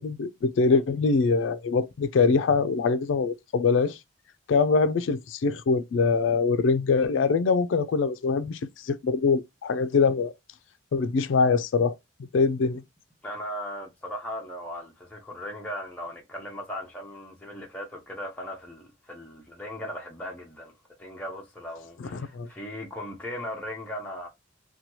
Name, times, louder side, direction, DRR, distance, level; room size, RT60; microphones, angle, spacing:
voice 1, 0.0-4.0 4.5-10.3 10.9-11.9 12.3-12.8 22.1-22.5, left 4 dB, 70° left, 0.3 m, -23 dB
voice 2, 13.2-24.3, equal, 10° left, 0.6 m, -38 dB
2.8 x 2.2 x 2.9 m
head